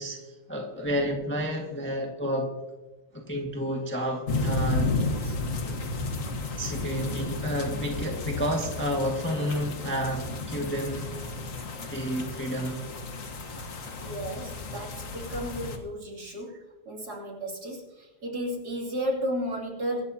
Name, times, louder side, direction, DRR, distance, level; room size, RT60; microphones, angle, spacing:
voice 1, 0.0-2.5 3.1-5.0 5.7-5.8 6.6-11.2 11.9-12.9, equal, 5° left, 0 dB, 1.5 m, -30 dB
sound 1, 4.3-15.8, left 3 dB, 45° left, 1.5 m, -32 dB
voice 2, 5.0-5.4 14.0-20.1, equal, 50° right, -2 dB, 3.4 m, -34 dB
24.5 x 12.0 x 2.8 m, 1.1 s
omnidirectional pair, 2.2 m